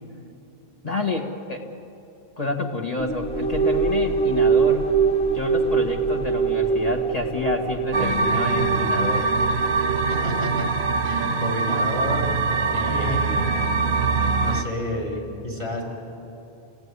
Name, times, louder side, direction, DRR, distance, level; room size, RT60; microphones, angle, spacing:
voice 1, 0.8-1.7 2.4-4.9 5.3-9.3 12.9-13.3, left 2 dB, 40° left, 2 dB, 1.7 m, -29 dB
sound 1, 3.0-10.6, right 5 dB, 5° left, 1.8 m, -23 dB
sound 2, 7.9-14.6, right 4 dB, 85° right, 1.3 m, -23 dB
voice 2, 10.1-10.7 11.0-12.3 12.7-13.5 14.3-15.8, equal, 55° right, 0 dB, 5.2 m, -30 dB
29.5 x 18.0 x 9.7 m, 2.9 s
omnidirectional pair, 1.1 m